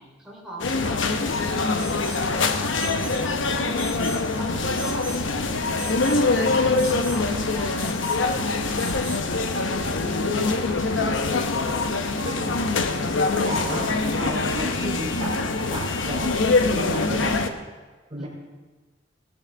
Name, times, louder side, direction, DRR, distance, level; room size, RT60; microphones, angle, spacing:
voice 1, 0.0-2.1 2.8-4.0 4.4-5.3 6.1-6.3 6.9-8.0 8.3-11.5 13.0-14.0 18.2-18.3, right 1 dB, 5° right, -5 dB, 3.6 m, -41 dB
sound 1, 0.6-17.5, left 3 dB, 85° left, 0.9 m, -24 dB
Alarm, 1.8-2.3 2.8-3.2 3.8-4.3 4.8-5.2 5.8-6.2 6.8-7.2 7.8-8.2 8.8-9.2, right 2 dB, 15° left, 2.4 m, -38 dB
voice 2, 3.6-3.9 12.1-12.7 13.4-15.3 15.7-16.3 16.6-17.4 18.1-18.3, right 1 dB, 35° right, -8 dB, 3.3 m, -33 dB
17.0 x 13.0 x 3.5 m, 1.3 s
head